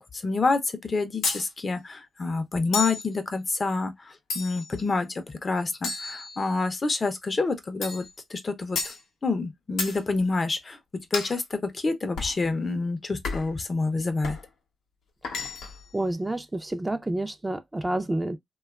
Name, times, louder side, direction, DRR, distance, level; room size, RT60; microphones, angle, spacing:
voice 1, 0.1-8.9 9.2-10.8 11.1-14.4, left 3 dB, 40° left, 0.6 m, -28 dB
sound 1, 1.2-1.5 2.7-3.1 4.3-4.8 5.8-6.7 7.8-8.1 8.8-9.0 9.8-10.0 11.1-11.4 12.2-12.4 13.2-13.6 14.2-14.5 15.2-15.8, left 4 dB, 85° left, 0.8 m, -31 dB
voice 2, 15.9-18.4, right 1 dB, 20° right, 0.5 m, -29 dB
2.7 x 2.3 x 2.2 m
cardioid pair, 60°, 0 cm